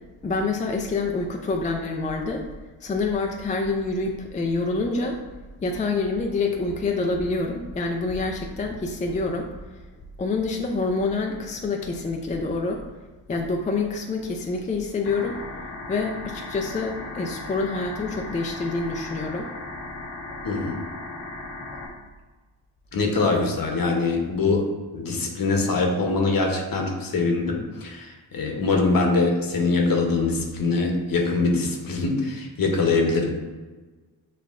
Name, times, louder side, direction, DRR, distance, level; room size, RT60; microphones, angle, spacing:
voice 1, 0.2-2.5 2.8-5.2 5.6-9.5 10.2-12.8 13.3-15.4 15.9-19.5, left 3 dB, 20° left, 2 dB, 0.3 m, -27 dB
sound 1, 15.0-21.9, left 2 dB, 80° left, 1.0 m, -37 dB
voice 2, 20.4-20.8 22.9-24.7 24.9-33.3, left 3 dB, 45° left, 2 dB, 0.9 m, -23 dB
6.5 x 2.4 x 2.4 m, 1.3 s
cardioid pair, 65°, 48 cm